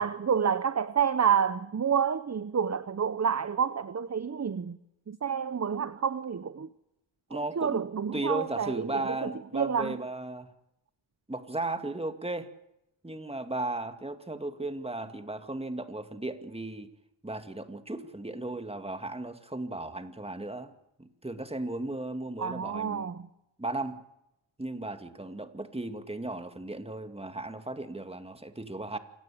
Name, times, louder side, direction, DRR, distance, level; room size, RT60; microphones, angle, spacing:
voice 1, 0.0-4.8 5.1-6.7 7.6-8.9 9.5-9.9 22.4-23.2, right 7 dB, 35° right, 0.9 m, -28 dB
voice 2, 7.3-7.8 8.1-10.5 11.3-12.5 13.0-16.9 17.2-20.7 21.0-23.1 23.6-24.0 24.6-29.0, right 2 dB, 10° right, 2.2 m, -36 dB
27.0 x 17.5 x 8.6 m
wide cardioid pair, 90°, 48 cm